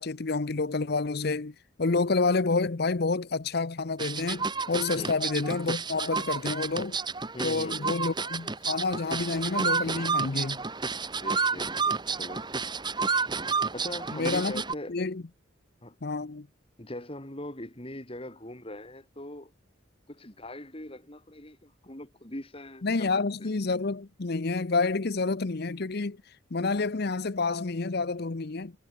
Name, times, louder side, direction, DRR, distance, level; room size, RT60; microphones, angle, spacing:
voice 1, 0.0-7.0 7.4-10.6 14.1-14.6 14.9-15.2 16.0-16.5 22.8-26.2 26.5-28.7, left 3 dB, 50° left, 0.7 m, -29 dB
sound 1, 4.0-14.7, right 4 dB, 20° right, 1.6 m, -30 dB
voice 2, 7.3-8.1 11.2-12.5 13.7-15.0 15.8-16.0 16.8-19.5 20.1-23.1 23.4-23.5, left 1 dB, 25° left, 2.7 m, -41 dB
head